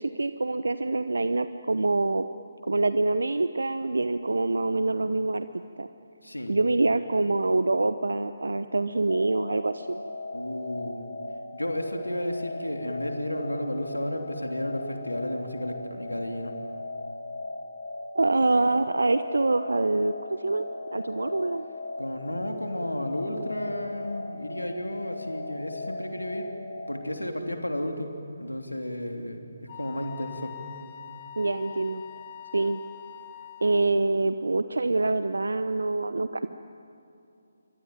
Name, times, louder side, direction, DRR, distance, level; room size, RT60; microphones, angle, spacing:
voice 1, 0.0-2.3 2.6-5.5 5.8-5.9 6.5-10.0 18.1-21.6 31.4-32.0 32.5-32.8 33.6-36.5, right 2 dB, 70° right, 11 dB, 0.9 m, -25 dB
voice 2, 6.2-6.5 10.3-11.1 11.5-16.5 22.0-26.5 26.9-30.6, left 1 dB, 85° left, 4 dB, 3.1 m, -33 dB
sound 1, 9.1-27.1, left 2 dB, 60° left, 3.2 m, -38 dB
Wind instrument woodwind instrument, 29.7-33.9, left 11 dB, 30° left, 1.5 m, -44 dB
27.5 x 23.5 x 9.2 m, 2.7 s
figure-of-eight pair, 145°, 0 cm